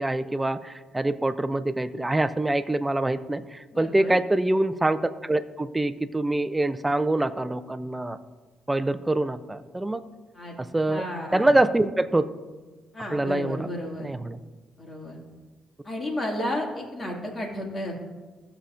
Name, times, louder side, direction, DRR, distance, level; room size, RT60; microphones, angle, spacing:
voice 1, 0.0-8.2 8.7-10.0 10.6-11.1 11.3-12.3 13.1-13.7 14.0-14.4, right 2 dB, 15° right, 12 dB, 0.5 m, -25 dB
voice 2, 3.7-4.2 10.3-10.6 10.9-11.6 12.9-14.1 14.8-15.2 15.8-17.9, left 1 dB, 35° left, 0 dB, 2.3 m, -32 dB
15.5 x 6.8 x 2.6 m, 1.3 s
cardioid pair, 90°, 0 cm